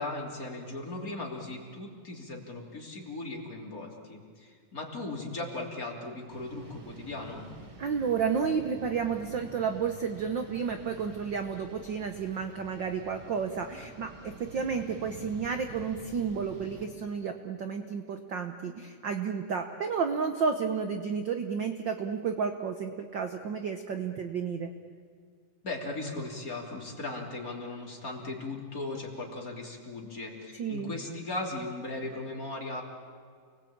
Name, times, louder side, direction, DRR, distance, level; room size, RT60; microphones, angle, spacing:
voice 1, 0.0-7.5 25.6-32.8, left 2 dB, 25° left, -1 dB, 3.6 m, -38 dB
sound 1, 6.3-16.9, right 2 dB, 35° right, 2.5 m, -48 dB
voice 2, 7.8-24.7 30.6-30.9, right 6 dB, 65° right, 6 dB, 1.1 m, -31 dB
29.0 x 20.5 x 8.8 m, 2.1 s
omnidirectional pair, 3.6 m